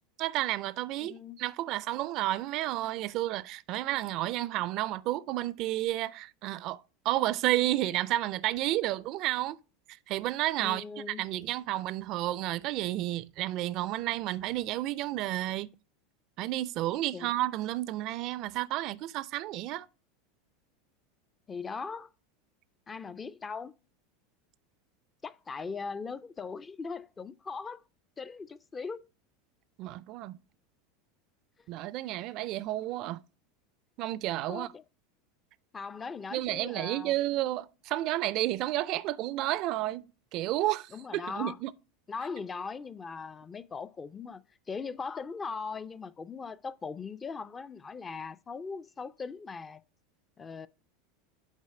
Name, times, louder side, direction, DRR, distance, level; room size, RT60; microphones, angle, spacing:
voice 1, 0.2-9.6 9.9-15.7 16.4-19.9 29.8-30.4 31.7-33.2 34.0-34.7 36.3-40.1 40.3-41.7, right 15 dB, 55° right, 0.3 m, -31 dB
voice 2, 1.0-1.4 10.6-11.3 17.1-17.3 21.5-22.1 22.9-23.8 25.2-27.8 28.2-29.1 34.5-34.8 35.7-37.1 40.9-41.6 42.1-44.4 44.7-49.8 50.4-50.7, left 5 dB, 25° left, 0.4 m, -39 dB
7.3 x 4.0 x 4.7 m
hypercardioid pair, 95°, 0 cm